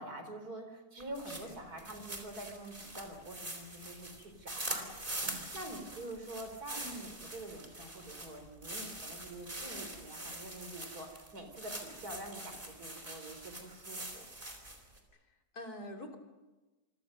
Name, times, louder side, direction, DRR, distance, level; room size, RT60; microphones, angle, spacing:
voice 1, 0.0-5.2 5.5-14.3, right 1 dB, 65° right, 6 dB, 4.7 m, -46 dB
sound 1, 1.0-15.0, right 1 dB, 30° right, 4.4 m, -44 dB
voice 2, 15.3-16.2, equal, 70° left, 3 dB, 3.8 m, -46 dB
27.0 x 25.0 x 6.6 m, 1.1 s
omnidirectional pair, 1.7 m